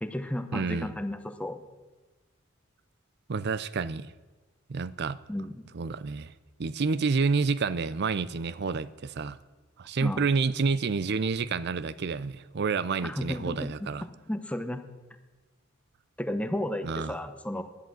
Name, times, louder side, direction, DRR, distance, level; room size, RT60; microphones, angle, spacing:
voice 1, 0.0-1.6 5.3-5.6 10.0-10.3 13.0-13.9 14.3-14.9 16.2-17.6, left 1 dB, 5° left, 7 dB, 0.9 m, -33 dB
voice 2, 0.5-0.9 3.3-4.1 4.7-5.2 5.7-6.3 6.6-9.4 9.8-14.0 16.8-17.2, right 4 dB, 55° right, 17 dB, 0.5 m, -29 dB
11.5 x 10.5 x 7.6 m, 1.3 s
head